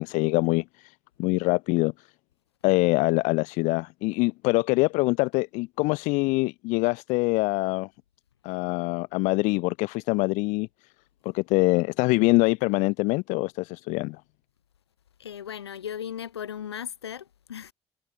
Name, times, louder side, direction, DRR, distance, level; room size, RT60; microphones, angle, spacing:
voice 1, 0.0-1.9 2.6-7.9 8.4-10.7 11.2-14.2, left 24 dB, 65° left, 1.2 m, -24 dB
voice 2, 15.2-17.7, left 9 dB, 80° left, 2.0 m, -37 dB
figure-of-eight pair, 40°, 13 cm